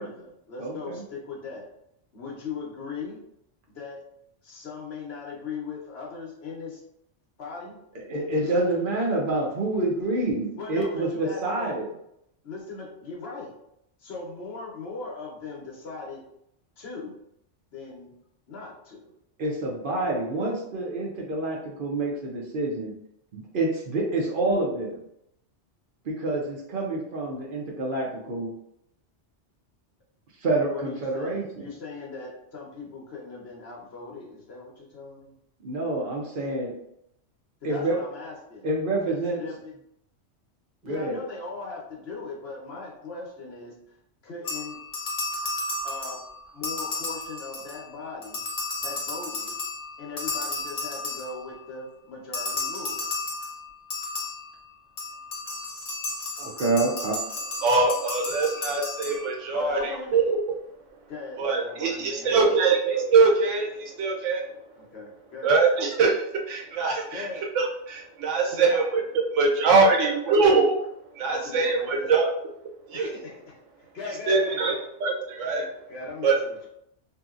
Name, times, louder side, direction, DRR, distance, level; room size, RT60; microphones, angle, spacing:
voice 1, 0.0-1.6 2.1-3.2 3.7-4.0 4.4-6.8 7.4-7.8 10.6-11.7 12.4-13.5 14.0-16.2 16.8-17.1 17.7-18.1 18.5-19.1 30.7-35.3 37.6-38.7 39.0-39.7 40.8-44.0 44.2-44.8 45.8-46.2 46.5-48.4 48.8-49.5 50.0-53.1 59.5-60.3 61.1-62.7 64.8-65.6 67.1-67.4 68.5-68.8 71.2-72.1 72.9-73.4 73.8-74.9 75.6-76.7, left 4 dB, 60° left, -3 dB, 1.0 m, -39 dB
voice 2, 0.6-1.0 8.1-11.9 19.4-22.9 23.3-25.0 26.0-28.5 30.4-31.7 35.6-36.7 37.6-38.0 38.6-39.4 40.8-41.2 56.4-57.2, right 2 dB, 55° right, -2 dB, 0.7 m, -27 dB
sound 1, 44.4-47.9 48.2-51.7 52.3-59.6, left 2 dB, 45° left, 0.5 m, -33 dB
voice 3, 57.6-60.4 61.4-64.5 65.4-69.0 69.3-70.7 71.1-72.3 72.9-73.2 74.3-74.7 75.0-75.6 76.2-76.4, right 4 dB, 85° right, 1 dB, 1.0 m, -23 dB
2.7 x 2.7 x 2.4 m, 0.77 s
omnidirectional pair, 1.2 m